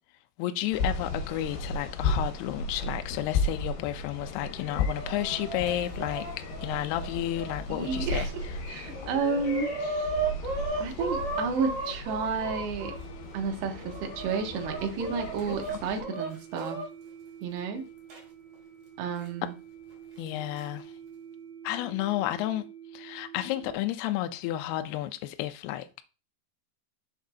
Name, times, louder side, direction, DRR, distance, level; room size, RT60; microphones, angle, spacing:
voice 1, 0.4-6.3 6.6-8.3 20.2-20.9 21.6-22.6 22.9-26.0, left 14 dB, 80° left, 2.4 m, -32 dB
sound 1, 0.7-16.0, left 2 dB, 65° left, 3.2 m, -35 dB
Chicken rooster, 4.5-8.0 8.6-8.7 8.9-13.0 13.6-16.8 18.1-18.2 19.2-19.3 20.3-20.6, right 3 dB, 45° right, 2.7 m, -35 dB
voice 2, 7.7-8.3 8.7-9.7 10.8-13.0 13.3-16.8 17.4-17.9 19.0-19.5, right 5 dB, 75° right, 3.3 m, -31 dB
sound 2, 12.8-23.8, right 8 dB, 30° left, 3.8 m, -48 dB
7.2 x 6.4 x 2.8 m
omnidirectional pair, 5.1 m